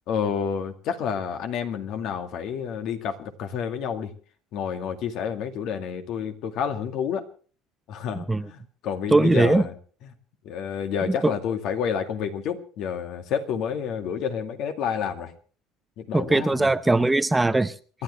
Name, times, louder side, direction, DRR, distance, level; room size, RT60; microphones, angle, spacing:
voice 1, 0.1-4.1 4.5-7.2 7.9-9.7 10.4-15.3 16.0-16.7, left 7 dB, 65° left, 7 dB, 2.2 m, -29 dB
voice 2, 8.1-8.5 9.1-9.6 11.0-11.3 16.1-17.7, right 2 dB, 10° right, 12 dB, 0.7 m, -20 dB
28.5 x 11.5 x 3.3 m, 0.41 s
cardioid pair, 120°, 0 cm